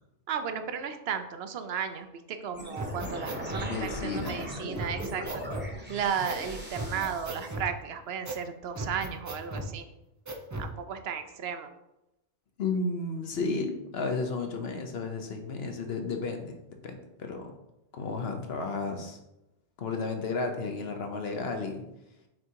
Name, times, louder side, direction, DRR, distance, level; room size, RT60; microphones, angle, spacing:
voice 1, 0.3-5.4 5.9-9.9 10.6-11.7, right 7 dB, 65° right, 9 dB, 0.8 m, -34 dB
sound 1, 2.5-7.5, equal, 10° right, 0.9 m, -39 dB
sound 2, 2.8-3.7 4.2-4.3 4.8-5.7 6.3-6.4 6.7-7.7 8.2-8.4 8.8-9.7 10.3-10.7, right 1 dB, 25° right, 0.4 m, -36 dB
voice 2, 3.7-4.5 12.6-17.5 17.9-19.2 19.8-21.8, left 3 dB, 65° left, 4 dB, 1.0 m, -33 dB
6.3 x 3.7 x 4.5 m, 0.90 s
omnidirectional pair, 1.2 m